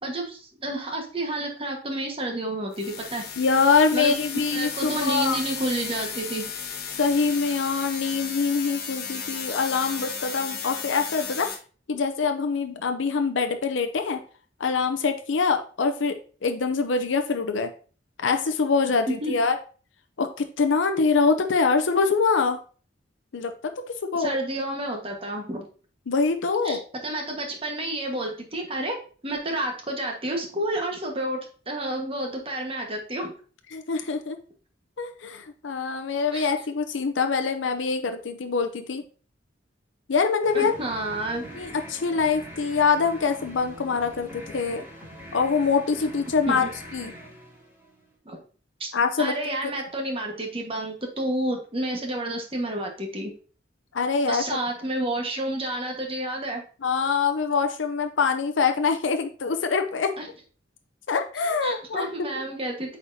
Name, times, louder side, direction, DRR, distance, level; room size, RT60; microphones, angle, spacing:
voice 1, 0.0-3.2 3.9-4.1 4.5-6.5 19.2-19.3 24.1-25.7 26.6-29.0 29.2-31.4 31.7-33.3 36.3-36.5 40.5-41.6 46.5-46.7 48.2-48.4 48.8-48.9 49.2-53.3 54.3-56.6 60.2-60.3 61.6-63.0, right 1 dB, 30° right, 2 dB, 1.4 m, -30 dB
sound 1, 2.7-11.6, left 6 dB, 55° left, 1.1 m, -34 dB
voice 2, 3.4-5.4 7.0-11.5 11.9-14.2 14.6-16.2 16.4-17.7 18.2-19.6 20.2-22.6 23.3-24.4 26.1-26.8 33.7-34.4 35.0-39.0 40.1-40.7 41.6-44.8 45.3-46.7 46.9-47.1 48.9-49.7 53.9-54.6 56.8-60.1 61.1-62.4, left 5 dB, 85° left, 7 dB, 0.6 m, -24 dB
sound 2, 40.4-48.1, equal, 15° right, 2.5 m, -43 dB
8.4 x 4.3 x 2.7 m, 0.40 s
head